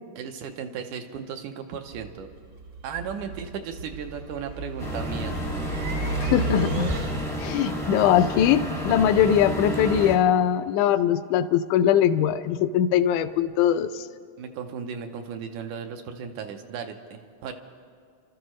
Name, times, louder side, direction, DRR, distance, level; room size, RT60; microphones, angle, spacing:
voice 1, 0.2-2.3 2.8-5.3 14.4-17.5, right 7 dB, 80° right, 5 dB, 2.2 m, -35 dB
sound 1, 1.9-7.5, right 3 dB, 55° right, 1.3 m, -33 dB
sound 2, 4.8-10.2, equal, 5° left, 0.5 m, -31 dB
voice 2, 6.2-6.9 7.4-14.1, left 10 dB, 80° left, 10 dB, 1.9 m, -21 dB
29.5 x 13.5 x 3.1 m, 2.3 s
omnidirectional pair, 3.6 m